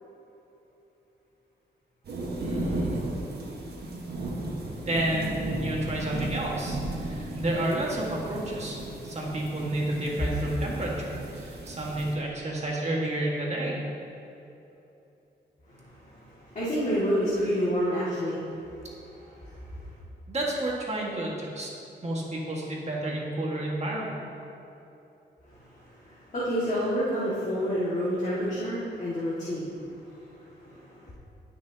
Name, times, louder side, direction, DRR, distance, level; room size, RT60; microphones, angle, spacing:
sound 1, 2.0-12.1, right 1 dB, 65° right, 1.5 m, -35 dB
voice 1, 2.4-3.0 4.9-13.8 20.3-21.7 22.0-24.1, right 1 dB, 35° right, -3 dB, 1.8 m, -30 dB
voice 2, 15.7-18.5 18.7-18.8 19.1-19.9 25.5-31.1, equal, 40° left, -9 dB, 2.1 m, -30 dB
18.5 x 6.3 x 2.9 m, 3.0 s
wide cardioid pair, 135°, 18 cm